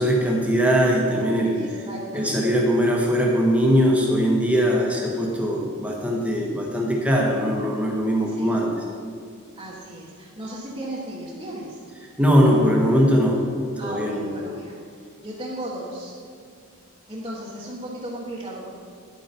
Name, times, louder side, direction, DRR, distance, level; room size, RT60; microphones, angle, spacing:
voice 1, 0.0-1.6 2.1-8.7 12.2-13.4 13.8-14.3, equal, 5° right, -1 dB, 1.4 m, -20 dB
voice 2, 1.5-2.5 8.3-8.6 9.5-11.8 13.8-14.8 15.2-16.1 17.1-18.7, right 1 dB, 20° right, -7 dB, 1.4 m, -35 dB
10.5 x 8.6 x 4.5 m, 2.2 s
head